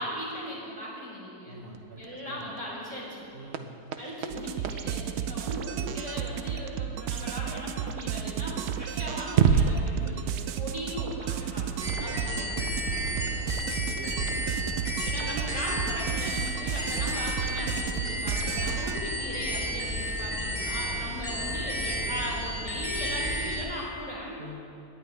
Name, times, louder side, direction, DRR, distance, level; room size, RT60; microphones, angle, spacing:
voice 1, 0.0-1.6 2.0-3.3 4.0-12.8 15.0-24.4, equal, 20° right, -6 dB, 3.8 m, -38 dB
voice 2, 1.4-2.5 3.3-3.7 12.0-12.2 13.0-13.5 13.8-14.5 24.4-24.6, right 2 dB, 45° right, 3 dB, 1.1 m, -45 dB
sound 1, 1.5-6.2 8.5-8.6 9.2-9.9, right 7 dB, 65° right, 0.7 m, -29 dB
sound 2, 4.3-19.0, right 9 dB, 80° right, 1.1 m, -33 dB
sound 3, 11.8-23.6, equal, 35° left, 2.5 m, -32 dB
18.0 x 11.0 x 3.4 m, 2.6 s
omnidirectional pair, 1.6 m